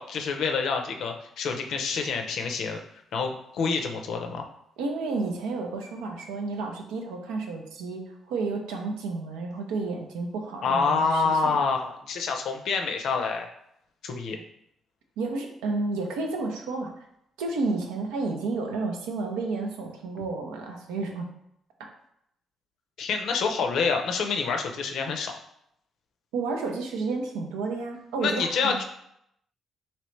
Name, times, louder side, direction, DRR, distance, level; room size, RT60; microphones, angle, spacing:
voice 1, 0.0-2.8 3.1-4.5 10.6-13.5 14.0-14.4 23.0-25.3 28.2-28.8, left 5 dB, 70° left, 4 dB, 0.4 m, -27 dB
voice 2, 4.8-11.6 15.2-16.9 17.4-21.3 26.3-28.8, right 3 dB, 85° right, 2 dB, 0.5 m, -31 dB
3.1 x 2.9 x 3.1 m, 0.74 s
supercardioid pair, 55°, 0 cm